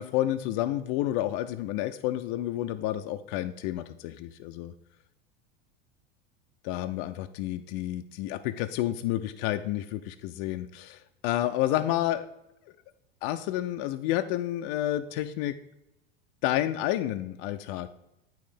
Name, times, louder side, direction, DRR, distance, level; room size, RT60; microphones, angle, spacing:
voice 1, 0.0-4.7 6.6-12.3 13.2-15.5 16.4-17.9, left 13 dB, 55° left, 7 dB, 0.5 m, -30 dB
9.0 x 3.1 x 5.0 m, 0.88 s
supercardioid pair, 120°, 30 cm